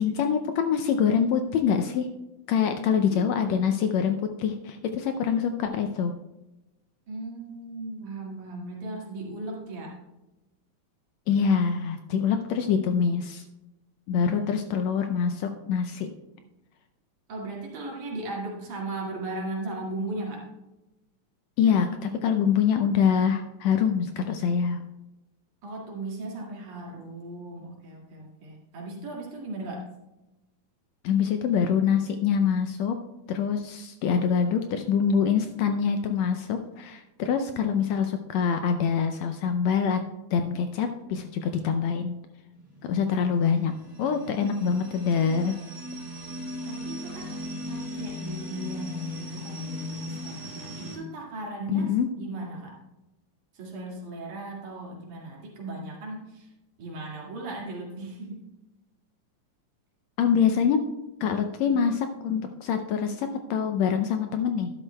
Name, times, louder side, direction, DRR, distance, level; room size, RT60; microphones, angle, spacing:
voice 1, 0.0-2.1 2.5-6.1 11.3-13.4 14.1-16.1 21.6-24.8 31.0-33.0 33.3-40.0 40.3-42.2 42.8-43.7 44.0-45.5 51.7-52.1 60.2-60.8 61.2-64.7, left 7 dB, 80° left, 6 dB, 1.6 m, -25 dB
voice 2, 2.6-3.3 7.1-9.9 14.2-14.4 17.3-20.5 25.6-29.9 46.7-52.8 53.5-56.5 56.8-58.5, right 2 dB, 75° right, -3 dB, 3.6 m, -37 dB
sound 1, 42.5-51.0, left 1 dB, 15° right, 3.3 m, -38 dB
12.0 x 11.0 x 2.2 m, 1.0 s
omnidirectional pair, 3.5 m